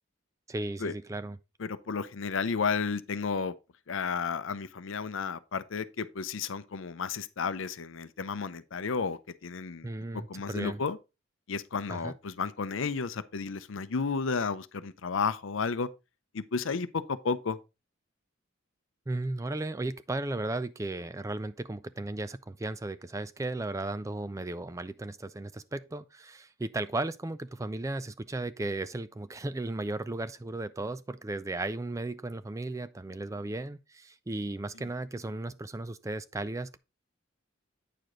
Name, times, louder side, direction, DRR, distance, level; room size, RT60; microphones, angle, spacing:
voice 1, 0.5-1.4 9.8-10.8 11.9-12.1 19.1-36.8, right 2 dB, 15° right, 0.3 m, -35 dB
voice 2, 1.6-3.5 3.9-9.9 10.3-11.0 11.5-15.9 16.3-17.6, left 5 dB, 70° left, 0.6 m, -32 dB
8.8 x 4.9 x 3.8 m
head